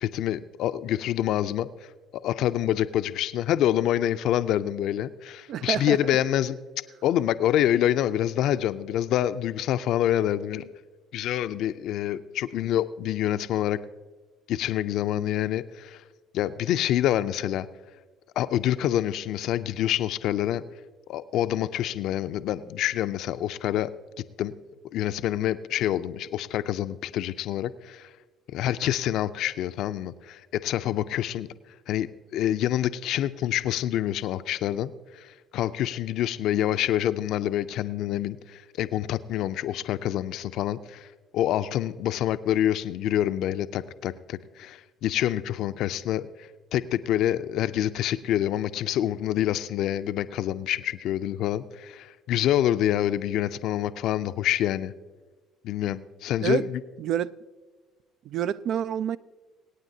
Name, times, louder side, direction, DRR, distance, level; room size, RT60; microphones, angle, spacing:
voice 1, 0.0-1.7 2.2-6.6 7.0-10.7 11.1-13.8 14.5-16.0 16.3-17.7 18.4-20.6 21.1-23.9 24.4-24.5 24.9-28.1 28.5-31.5 31.9-35.2 35.5-41.1 41.3-46.3 46.7-54.9 55.6-56.8, left 12 dB, 65° left, 0.4 m, -26 dB
voice 2, 5.5-6.2 56.4-56.6 57.0-57.3 58.3-59.2, right 9 dB, 60° right, 0.3 m, -28 dB
24.5 x 9.0 x 2.8 m
hypercardioid pair, 60°, 0 cm